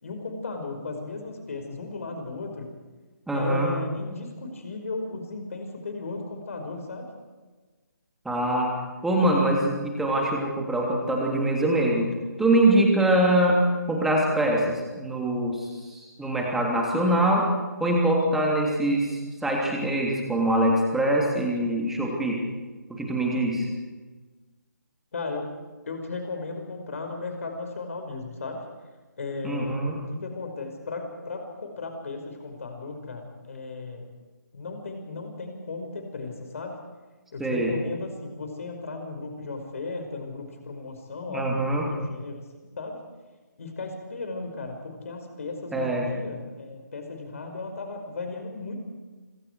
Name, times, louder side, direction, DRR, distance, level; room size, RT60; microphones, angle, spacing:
voice 1, 0.0-2.7 3.3-7.1 25.1-25.5 25.9-28.6 29.2-29.8 30.1-34.1 34.5-36.8 37.3-42.4 42.8-43.0 43.6-48.8, left 3 dB, 45° left, 4 dB, 5.3 m, -35 dB
voice 2, 3.3-3.7 8.2-8.7 9.0-12.1 12.4-13.6 13.9-17.5 17.8-22.4 22.9-23.7 29.4-30.0 37.4-37.7 41.3-41.8 45.7-46.1, right 1 dB, 5° right, -1 dB, 3.1 m, -23 dB
26.0 x 23.0 x 4.7 m, 1.3 s
figure-of-eight pair, 145°, 10 cm